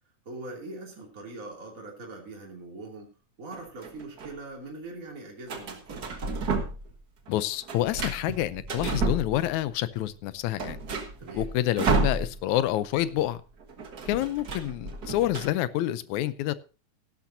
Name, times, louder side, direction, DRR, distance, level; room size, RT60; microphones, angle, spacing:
voice 1, 0.2-3.1 3.4-6.1 11.2-11.5, right 2 dB, 25° right, 0 dB, 3.1 m, -42 dB
sound 1, 3.5-4.3 5.5-7.0 7.3-9.7 10.1-10.2 10.4-12.7 12.9-13.1 13.4-15.5, right 3 dB, 40° right, 1.5 m, -31 dB
voice 2, 7.3-10.8 11.3-13.4 14.1-16.5, left 14 dB, 80° left, 15 dB, 2.0 m, -28 dB
16.0 x 12.0 x 2.7 m, 0.32 s
omnidirectional pair, 3.5 m